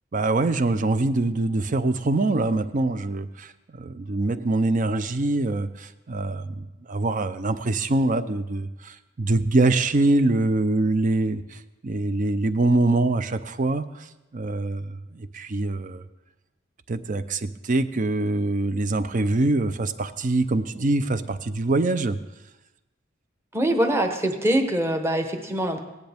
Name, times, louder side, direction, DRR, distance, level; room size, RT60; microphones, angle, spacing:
voice 1, 0.1-3.5 3.8-16.0 16.9-22.2, right 2 dB, 40° right, 12 dB, 0.5 m, -24 dB
voice 2, 23.5-25.8, right 1 dB, 15° right, 4 dB, 1.0 m, -23 dB
17.0 x 10.5 x 3.5 m, 1.0 s
head